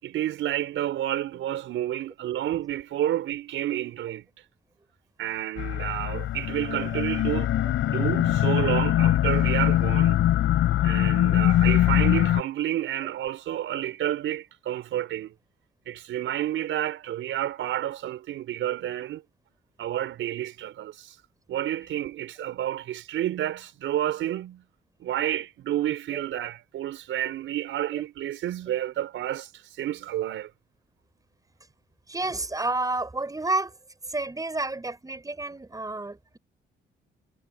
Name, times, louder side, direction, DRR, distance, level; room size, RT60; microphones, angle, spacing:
voice 1, 0.0-4.3 5.2-7.5 7.8-10.2 10.8-15.3 15.8-19.2 19.8-21.1 21.5-24.6 25.0-30.5, right 12 dB, 80° right, 5.1 m, -30 dB
sound 1, 5.6-12.4, left 12 dB, 80° left, 6.1 m, -22 dB
voice 2, 32.1-33.8 34.1-36.4, right 2 dB, 15° right, 7.0 m, -30 dB
cardioid pair, 90°, 20 cm